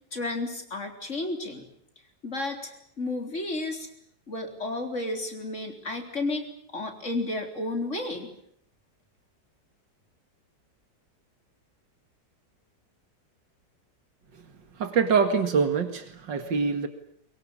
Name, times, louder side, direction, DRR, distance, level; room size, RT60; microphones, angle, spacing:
voice 1, 0.1-1.6 2.2-3.9 4.3-6.5 6.7-8.3, left 2 dB, 40° left, 4 dB, 4.3 m, -32 dB
voice 2, 14.8-16.9, right 5 dB, 90° right, 8 dB, 2.7 m, -25 dB
23.5 x 23.0 x 8.8 m, 0.68 s
omnidirectional pair, 1.9 m